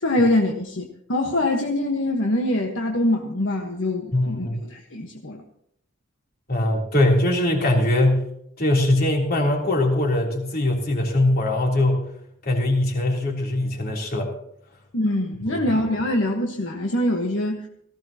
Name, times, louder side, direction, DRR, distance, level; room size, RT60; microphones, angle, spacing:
voice 1, 0.0-5.4 14.9-17.7, left 1 dB, 65° left, 1 dB, 1.4 m, -24 dB
voice 2, 4.1-4.6 6.5-8.2 8.6-12.0 12.4-14.3 15.5-15.6, left 1 dB, 50° left, 0 dB, 3.4 m, -21 dB
18.0 x 16.0 x 2.9 m, 0.73 s
head